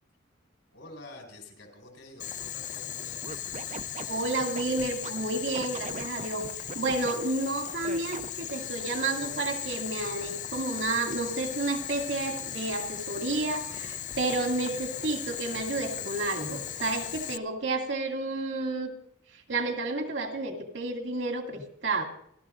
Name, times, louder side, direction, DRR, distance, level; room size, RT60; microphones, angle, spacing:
voice 1, 0.7-3.2, left 2 dB, 75° left, 2 dB, 4.7 m, -48 dB
Boiling, 2.2-17.4, left 10 dB, 40° left, 0.5 m, -37 dB
Scratching (performance technique), 3.2-5.1 5.5-7.1 7.8-8.5, right 4 dB, 40° right, 0.6 m, -39 dB
voice 2, 4.1-6.5 6.7-18.9 19.3-22.0, right 2 dB, 75° right, 2 dB, 2.4 m, -31 dB
29.5 x 13.0 x 2.5 m, 0.71 s
head